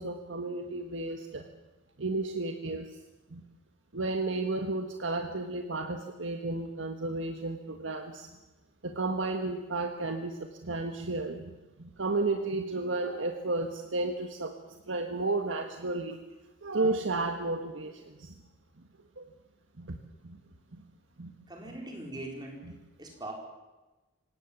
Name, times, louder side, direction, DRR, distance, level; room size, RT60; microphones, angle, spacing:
voice 1, 0.0-1.4 2.0-3.0 3.3-3.4 3.9-8.3 8.8-11.5 11.8-14.5 14.9-16.2 16.6-18.3 18.8-18.9 19.2-19.3 19.8-20.0 20.2-20.4 20.7-20.8 21.2-21.3 21.7-21.8 22.6-22.7, right 2 dB, 80° right, 5 dB, 1.5 m, -33 dB
voice 2, 21.5-22.7 23.0-23.3, right 1 dB, 20° right, 1 dB, 4.4 m, -41 dB
25.5 x 19.0 x 7.3 m, 1.1 s
head